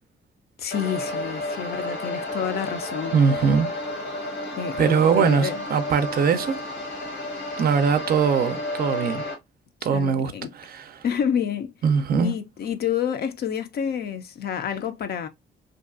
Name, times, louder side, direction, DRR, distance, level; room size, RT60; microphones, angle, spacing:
voice 1, 0.6-3.2 4.6-5.6 9.9-10.5 11.0-11.7 12.2-15.3, left 8 dB, 55° left, 0.4 m, -28 dB
sound 1, 0.7-9.3, left 1 dB, 80° left, 1.1 m, -31 dB
voice 2, 3.1-3.7 4.8-6.6 7.6-9.2 9.8-11.0 11.8-12.3, right 6 dB, 50° right, 0.4 m, -21 dB
2.6 x 2.3 x 2.3 m
cardioid pair, 90°, 20 cm